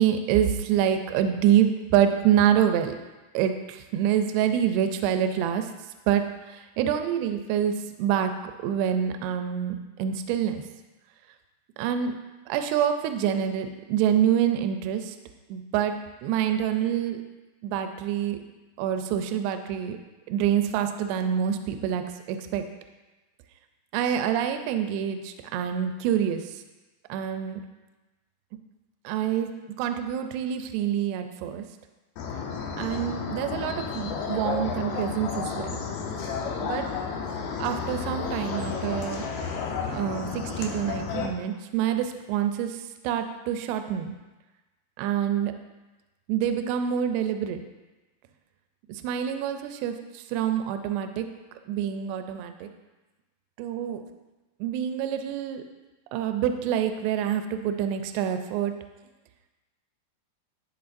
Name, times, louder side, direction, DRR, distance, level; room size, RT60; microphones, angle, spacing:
voice 1, 0.0-2.9 3.3-5.7 6.1-6.2 6.5-10.6 11.8-12.1 12.5-15.2 15.5-15.9 16.2-17.2 17.6-18.4 18.8-20.0 20.3-22.0 22.3-22.6 23.9-26.4 27.1-27.6 29.1-31.6 32.8-35.8 36.6-36.9 37.6-39.3 39.8-42.8 43.0-44.1 45.0-45.5 46.3-47.6 48.9-51.3 51.7-52.7 53.6-54.0 54.6-55.6 56.1-58.7, right 9 dB, 85° right, 7 dB, 2.5 m, -26 dB
sound 1, 32.2-41.3, left 5 dB, 80° left, 2.8 m, -32 dB
12.5 x 4.4 x 2.6 m, 1.1 s
omnidirectional pair, 4.7 m